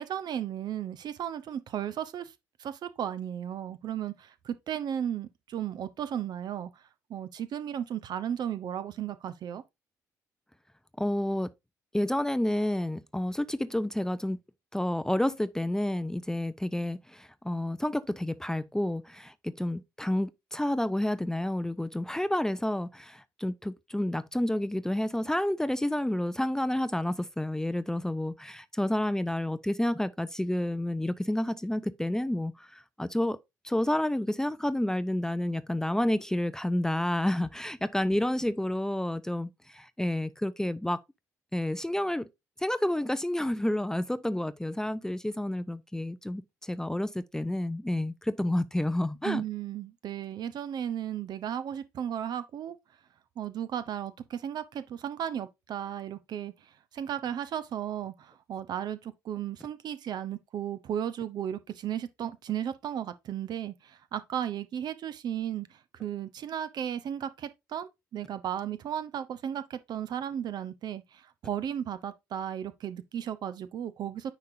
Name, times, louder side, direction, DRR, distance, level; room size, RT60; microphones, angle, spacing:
voice 1, 0.0-2.3 2.6-6.7 7.1-9.6 49.2-52.8 53.4-56.5 56.9-74.3, right 9 dB, 50° right, 0.9 m, -35 dB
voice 2, 11.0-11.5 11.9-14.4 14.7-33.4 33.6-41.0 41.5-42.3 42.6-49.4, left 1 dB, 5° left, 0.6 m, -30 dB
9.3 x 5.1 x 2.7 m
figure-of-eight pair, 45°, 9 cm